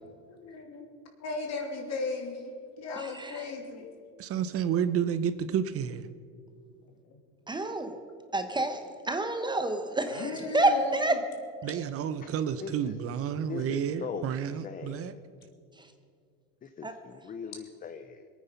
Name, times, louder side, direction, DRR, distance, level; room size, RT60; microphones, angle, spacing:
voice 1, 0.3-0.8 1.2-3.9 7.1-7.2 10.1-11.0, left 3 dB, 55° left, 2 dB, 2.9 m, -36 dB
voice 2, 2.9-3.5 7.5-8.0 8.3-11.2 15.8-15.9 16.8-17.0, right 2 dB, 15° right, 7 dB, 1.0 m, -29 dB
voice 3, 4.2-6.1 11.6-15.1, right 8 dB, 45° right, 12 dB, 0.8 m, -30 dB
voice 4, 12.6-12.9 13.5-14.3 14.6-15.2 16.6-18.3, left 6 dB, 25° left, 9 dB, 0.7 m, -40 dB
22.0 x 9.3 x 5.7 m, 2.2 s
supercardioid pair, 115°, 32 cm